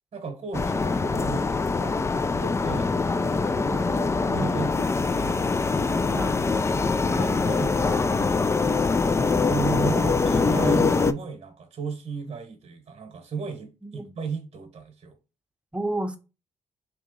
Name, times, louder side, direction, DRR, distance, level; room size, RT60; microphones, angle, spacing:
voice 1, 0.1-2.9 4.3-5.4 7.1-8.1 9.4-15.2, right 5 dB, 55° right, 1.0 m, -34 dB
sound 1, 0.5-11.1, left 4 dB, 20° left, 0.4 m, -23 dB
voice 2, 3.6-3.9 4.2-4.7 6.1-6.4 13.8-14.1 15.7-16.2, right 1 dB, 10° right, 0.8 m, -31 dB
3.5 x 2.9 x 3.7 m
cardioid pair, 60°, 13 cm